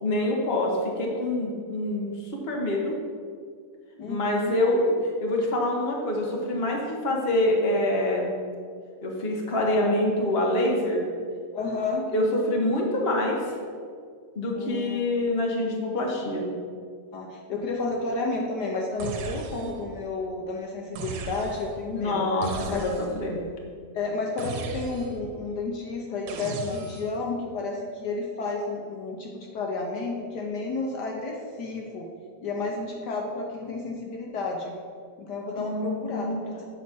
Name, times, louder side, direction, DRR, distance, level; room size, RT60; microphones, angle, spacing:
voice 1, 0.0-0.7 1.0-2.9 4.1-4.9 5.2-8.3 9.0-11.0 12.1-13.4 14.3-16.4 21.9-23.4 35.6-36.4, left 1 dB, 35° left, -1 dB, 1.3 m, -26 dB
voice 2, 4.0-4.5 9.7-10.0 11.5-12.1 14.5-15.0 17.1-22.3 22.7-22.9 23.9-32.1 32.4-34.8 35.2-36.6, left 3 dB, 70° left, 0 dB, 1.3 m, -31 dB
sound 1, 19.0-19.9 20.9-21.8 22.4-23.3 24.4-25.3 26.3-27.2, right 4 dB, 85° right, 1.4 m, -36 dB
8.3 x 4.1 x 6.0 m, 2.1 s
omnidirectional pair, 2.0 m